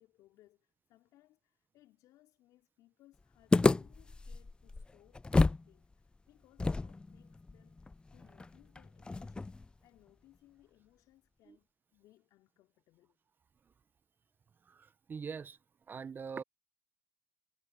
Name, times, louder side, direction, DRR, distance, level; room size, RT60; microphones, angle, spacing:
voice 1, 0.0-13.2, left 16 dB, 60° left, 4.3 m, -66 dB
sound 1, 3.5-5.7 5.9-6.0 6.6-9.7, left 3 dB, 15° left, 0.5 m, -31 dB
voice 2, 14.7-15.6 15.9-16.4, right 6 dB, 30° right, 0.9 m, -43 dB
hypercardioid pair, 80°, 7 cm